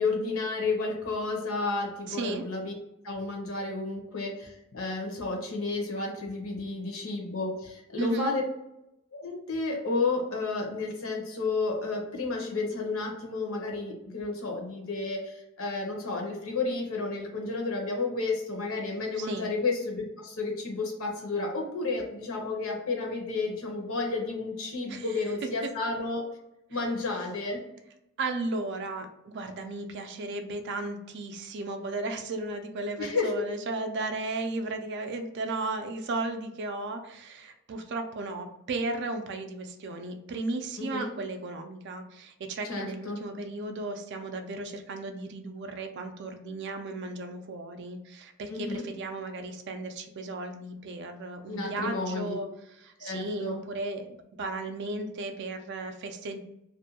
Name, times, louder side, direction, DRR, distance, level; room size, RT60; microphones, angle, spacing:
voice 1, 0.0-2.7 3.0-8.4 9.1-26.2 26.7-27.6 33.0-33.3 40.8-41.1 42.7-43.2 48.5-48.8 51.5-52.3 53.0-53.6, left 3 dB, 70° left, 0 dB, 0.8 m, -31 dB
voice 2, 2.1-2.4 8.0-8.3 19.2-19.5 24.9-25.1 28.2-52.5 52.8-56.4, right 2 dB, 55° right, 6 dB, 0.4 m, -35 dB
2.6 x 2.2 x 2.8 m, 0.85 s
head